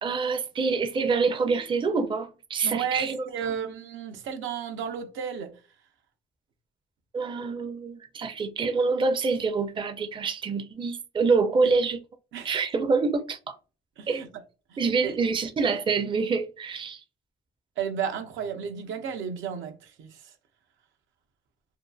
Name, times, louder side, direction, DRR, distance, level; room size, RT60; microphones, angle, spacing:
voice 1, 0.0-3.6 7.1-12.0 12.4-13.6 14.1-14.2 14.8-17.0, right 4 dB, 25° right, 0.4 m, -26 dB
voice 2, 2.6-5.5 12.3-12.6 14.0-14.3 14.7-15.1 17.8-20.2, right 7 dB, 75° right, 0.6 m, -33 dB
2.6 x 2.4 x 2.3 m
cardioid pair, 90°, 20 cm